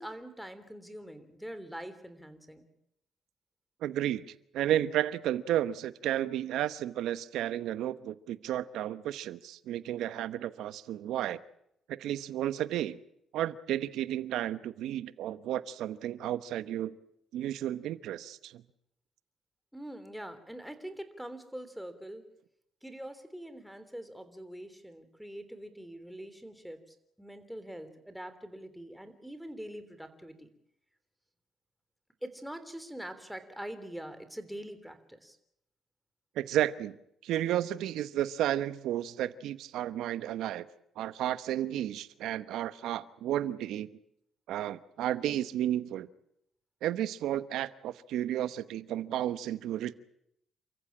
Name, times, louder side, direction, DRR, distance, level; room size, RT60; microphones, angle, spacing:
voice 1, 0.0-2.7 19.7-22.3 22.8-26.8 27.2-30.5 32.2-35.4, right 1 dB, ahead, 9 dB, 3.3 m, -44 dB
voice 2, 3.8-11.4 11.9-13.0 13.3-17.0 17.3-18.6 36.3-37.0 37.2-40.7 41.0-43.9 44.5-46.1 46.8-49.9, right 12 dB, 85° right, 15 dB, 0.9 m, -32 dB
28.5 x 15.0 x 8.8 m, 0.78 s
cardioid pair, 90°, 0 cm